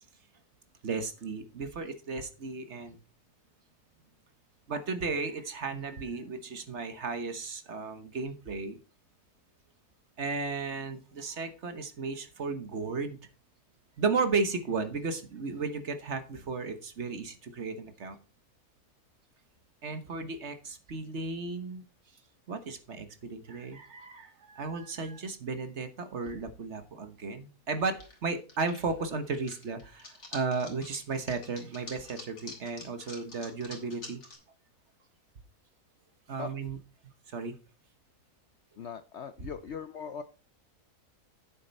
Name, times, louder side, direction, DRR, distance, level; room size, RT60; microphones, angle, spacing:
voice 1, 0.8-3.0 4.7-8.8 10.2-13.2 14.0-18.2 19.8-21.8 22.5-34.2 36.3-36.8 37.3-37.5, right 4 dB, 50° right, 9 dB, 1.3 m, -34 dB
sound 1, 27.8-28.2 28.5-34.3, left 2 dB, 45° left, 3.2 m, -47 dB
voice 2, 38.8-40.2, left 6 dB, 60° left, 11 dB, 0.7 m, -40 dB
8.8 x 7.3 x 4.1 m, 0.35 s
omnidirectional pair, 1.6 m